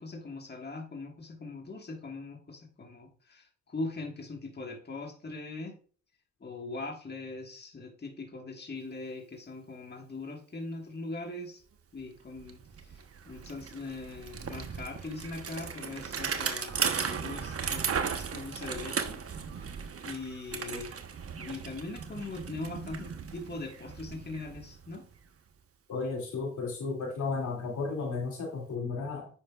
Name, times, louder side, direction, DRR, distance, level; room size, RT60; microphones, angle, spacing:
voice 1, 0.0-5.7 6.4-11.6 11.9-13.0 13.3-19.2 20.0-21.0 21.4-25.0, left 3 dB, 30° left, 1 dB, 1.6 m, -41 dB
Bicycle, 12.0-12.1 12.4-25.3, right 6 dB, 50° right, 1.0 m, -36 dB
voice 2, 25.9-29.3, left 4 dB, 70° left, 0 dB, 2.5 m, -34 dB
8.7 x 5.5 x 2.4 m, 0.41 s
supercardioid pair, 55°, 31 cm